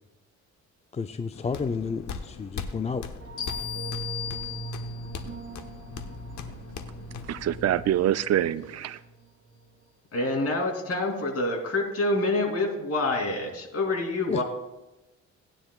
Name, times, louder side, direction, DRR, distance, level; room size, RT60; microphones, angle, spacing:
voice 1, 0.9-3.0 14.3-14.4, left 5 dB, 20° left, 9 dB, 0.4 m, -31 dB
sound 1, 1.3-7.6, left 6 dB, 70° left, 1.1 m, -40 dB
sound 2, 3.2-9.2 9.5-9.6, right 3 dB, 40° right, 2.3 m, -40 dB
sound 3, 3.4-5.2, left 9 dB, 85° left, 4.0 m, -36 dB
voice 2, 7.3-9.0, right 11 dB, 55° right, 15 dB, 0.5 m, -25 dB
voice 3, 10.1-14.4, left 2 dB, 50° left, 1 dB, 3.1 m, -27 dB
18.0 x 9.9 x 2.4 m, 1.0 s
cardioid pair, 90°, 30 cm